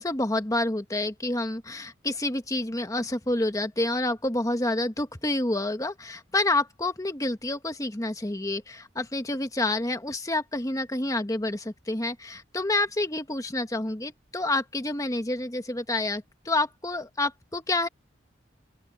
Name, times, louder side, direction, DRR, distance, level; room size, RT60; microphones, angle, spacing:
voice 1, 0.0-17.9, left 2 dB, 20° left, 1.3 m, -28 dB
open air
head